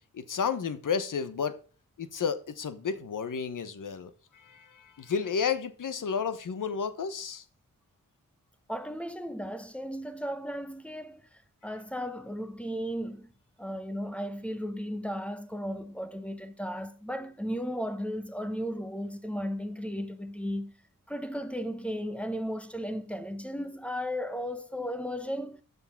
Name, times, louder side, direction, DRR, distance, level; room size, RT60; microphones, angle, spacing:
voice 1, 0.1-1.6 2.0-7.4, left 6 dB, 65° left, 1.1 m, -32 dB
voice 2, 8.7-13.3 13.6-20.7 21.1-25.6, equal, 5° left, 1.0 m, -35 dB
6.9 x 6.8 x 7.1 m
wide cardioid pair, 85°, 34 cm